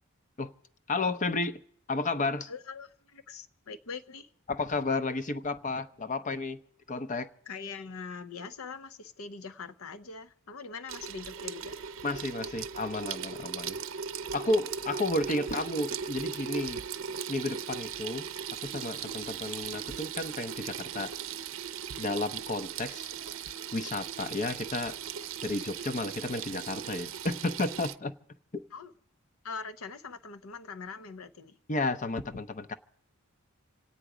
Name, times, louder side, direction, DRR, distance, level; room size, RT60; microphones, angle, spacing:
voice 1, 0.9-1.6 1.9-2.5 4.5-6.6 6.9-7.3 12.0-13.8 14.3-16.8 17.3-18.3 18.6-21.1 22.0-23.1 23.7-25.0 25.4-28.2 31.7-32.7, left 2 dB, 35° left, 0.7 m, -32 dB
voice 2, 2.5-4.3 7.5-11.8 28.7-28.9 29.4-31.6, left 5 dB, 80° left, 0.8 m, -42 dB
Water tap faucet / Sink (filling or washing), 10.9-28.0, right 7 dB, 65° right, 0.6 m, -38 dB
27.0 x 9.1 x 4.9 m
head